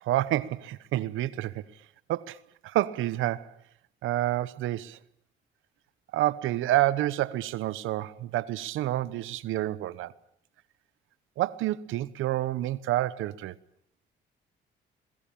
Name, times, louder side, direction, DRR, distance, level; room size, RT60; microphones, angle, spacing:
voice 1, 0.0-1.6 2.1-2.4 2.6-3.5 4.0-5.0 6.1-10.1 11.4-13.5, right 15 dB, 85° right, 1.0 m, -28 dB
23.0 x 21.5 x 8.7 m
cardioid pair, 90°, 20 cm